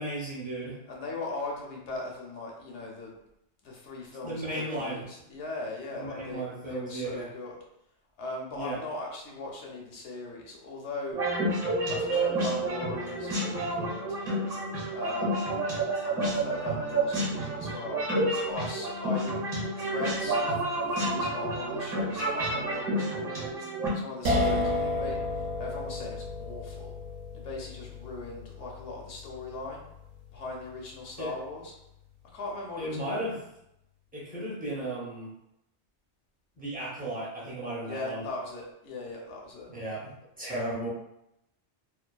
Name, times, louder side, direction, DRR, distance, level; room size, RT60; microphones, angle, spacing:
voice 1, 0.0-0.8 4.2-5.0 6.0-7.3 8.5-8.8 31.2-31.3 32.8-33.4 34.1-35.3 36.6-38.2 39.7-40.1 40.4-40.9, right 1 dB, 10° right, -6 dB, 0.4 m, -35 dB
voice 2, 0.9-3.1 3.6-7.5 8.2-11.2 11.9-14.2 14.9-15.6 16.0-18.0 18.4-19.3 19.8-20.5 20.8-23.4 23.9-25.2 25.6-26.9 27.3-29.8 30.3-31.7 32.3-33.2 37.9-39.7 40.5-40.8, left 2 dB, 85° left, -1 dB, 1.0 m, -39 dB
sound 1, 11.1-23.9, right 2 dB, 40° right, 0.8 m, -30 dB
sound 2, 24.2-31.2, left 2 dB, 70° right, 0.8 m, -32 dB
2.6 x 2.3 x 2.2 m, 0.82 s
omnidirectional pair, 1.2 m